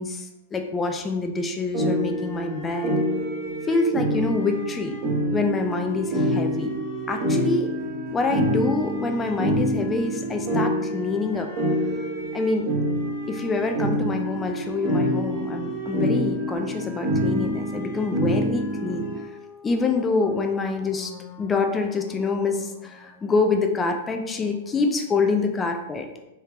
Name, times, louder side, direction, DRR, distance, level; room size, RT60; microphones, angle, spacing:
voice 1, 0.0-2.9 3.7-5.0 5.3-6.7 7.1-7.7 8.1-11.5 12.3-12.7 13.3-26.1, left 3 dB, 15° left, 4 dB, 0.4 m, -26 dB
sound 1, 1.7-19.2, equal, 40° right, 0.8 m, -26 dB
3.3 x 3.2 x 2.4 m, 0.90 s
figure-of-eight pair, 100°, 0 cm